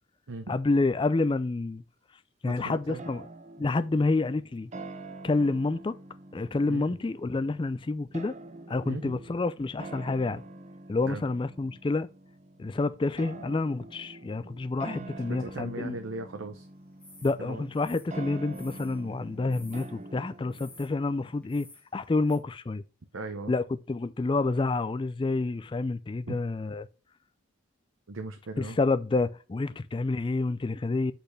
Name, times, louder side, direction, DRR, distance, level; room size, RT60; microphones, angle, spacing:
voice 1, 0.5-1.8 2.4-3.2 3.6-4.7 5.2-6.0 6.3-8.4 8.7-10.4 10.9-12.1 12.6-16.0 17.2-21.7 21.9-22.8 23.5-26.9 28.6-31.1, left 3 dB, 25° left, 0.3 m, -28 dB
voice 2, 2.4-3.0 6.7-6.9 8.8-9.2 11.1-11.2 15.0-16.7 17.4-17.7 23.1-23.5 26.3-26.4 28.1-28.8, right 3 dB, 85° right, 0.8 m, -38 dB
sound 1, 3.0-21.5, right 2 dB, 35° right, 0.6 m, -46 dB
sound 2, 17.0-17.3 17.7-19.0 19.5-19.9 20.5-20.9 21.4-21.8 22.3-22.4, left 2 dB, 5° left, 1.5 m, -52 dB
7.9 x 4.3 x 3.2 m
head